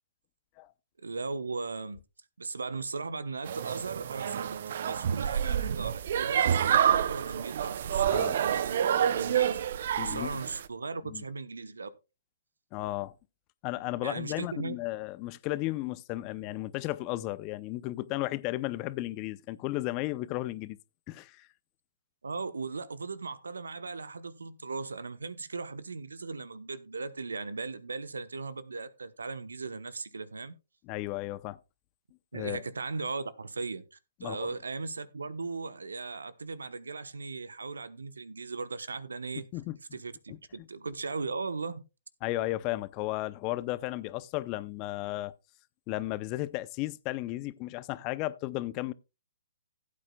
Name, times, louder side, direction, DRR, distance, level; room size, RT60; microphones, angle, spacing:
voice 1, 1.0-2.0 2.4-9.6 9.9-11.9 14.0-14.8 22.2-30.5 32.3-39.5 39.9-41.8, right 4 dB, 80° right, 1.0 m, -38 dB
sound 1, 3.5-10.7, right 9 dB, 55° right, 0.6 m, -28 dB
voice 2, 10.0-10.4 11.1-11.2 12.7-13.1 13.6-20.8 21.1-21.5 30.9-31.6 32.3-32.6 34.2-34.5 39.5-39.7 40.3-40.4 42.2-45.3 45.9-48.9, left 18 dB, 30° left, 0.6 m, -34 dB
16.5 x 8.6 x 2.3 m
hypercardioid pair, 130°, 0 cm